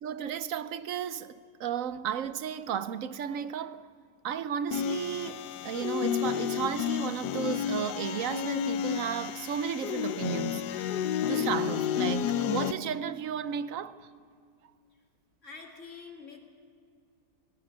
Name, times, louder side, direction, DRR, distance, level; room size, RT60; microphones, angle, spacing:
voice 1, 0.0-3.8 4.2-14.0, right 8 dB, 65° right, 1.0 m, -34 dB
sound 1, 4.7-12.7, left 9 dB, 80° left, 1.3 m, -31 dB
voice 2, 15.4-16.4, left 5 dB, 45° left, 2.6 m, -47 dB
18.0 x 17.5 x 9.6 m
omnidirectional pair, 1.7 m